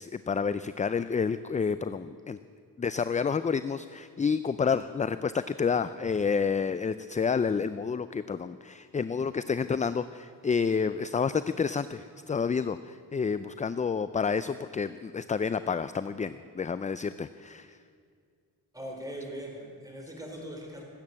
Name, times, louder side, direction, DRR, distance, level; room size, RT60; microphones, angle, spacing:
voice 1, 0.0-2.4 2.8-17.8, left 5 dB, 20° left, 13 dB, 0.3 m, -29 dB
voice 2, 18.7-20.8, equal, 10° right, 0 dB, 4.3 m, -40 dB
19.0 x 8.8 x 8.6 m, 2.2 s
cardioid pair, 85°, 40 cm